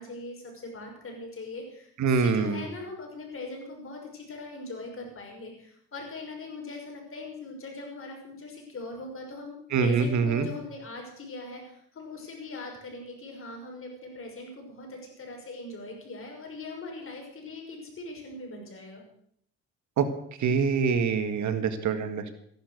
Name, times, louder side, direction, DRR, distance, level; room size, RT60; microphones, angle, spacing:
voice 1, 0.0-19.0, left 2 dB, 45° left, 1 dB, 6.5 m, -41 dB
voice 2, 2.0-2.7 9.7-10.5 20.0-20.1 20.4-22.3, right 5 dB, 70° right, 9 dB, 1.9 m, -25 dB
15.0 x 11.5 x 6.6 m, 0.68 s
cardioid pair, 90°, 30 cm